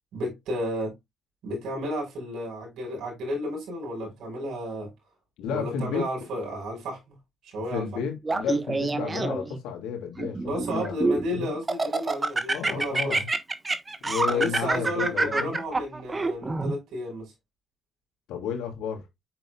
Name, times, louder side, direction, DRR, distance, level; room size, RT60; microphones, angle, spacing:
voice 1, 0.1-0.9 1.4-4.9 5.5-7.2 7.4-8.0 10.5-13.2 14.3-17.3, equal, 80° right, 5.6 m, -32 dB
voice 2, 5.4-6.0 7.7-11.0 11.3-11.6 12.5-13.3 14.0-15.6 18.3-19.1, left 7 dB, 90° left, 3.0 m, -32 dB
Laughter, 8.2-9.6 10.2-11.2 11.7-16.7, right 3 dB, 25° right, 1.3 m, -26 dB
9.0 x 6.6 x 2.4 m
cardioid pair, 90°, 0 cm